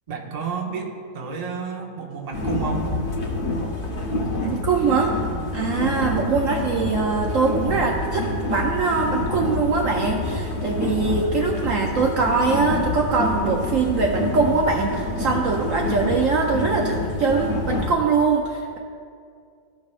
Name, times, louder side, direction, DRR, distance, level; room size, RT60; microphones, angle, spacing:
voice 1, 0.1-3.0, right 5 dB, 45° right, 1 dB, 0.5 m, -31 dB
sound 1, 2.3-17.9, left 2 dB, 45° left, 0.7 m, -27 dB
voice 2, 4.4-5.2 5.5-18.8, right 4 dB, 70° right, 0 dB, 0.8 m, -22 dB
sound 2, 5.3-5.7 6.1-6.9 7.2-8.7 9.1-9.5 10.1-10.7 11.1-11.5 12.1-12.6 13.0-13.1, left 4 dB, 70° left, 1.2 m, -39 dB
15.0 x 5.3 x 2.4 m, 2.4 s
omnidirectional pair, 1.9 m